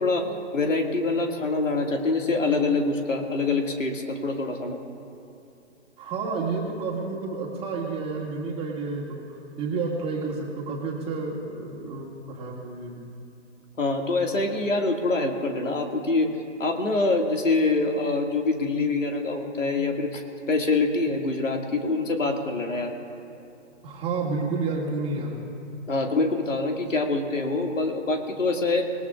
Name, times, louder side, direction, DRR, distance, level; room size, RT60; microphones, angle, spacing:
voice 1, 0.5-4.8 13.8-16.3 16.6-22.9 25.9-28.9, left 3 dB, 85° left, 2 dB, 2.2 m, -25 dB
voice 2, 6.0-13.1 23.8-25.4, right 4 dB, 15° right, -3 dB, 2.2 m, -30 dB
26.0 x 19.5 x 2.5 m, 2.7 s
figure-of-eight pair, 135°, 37 cm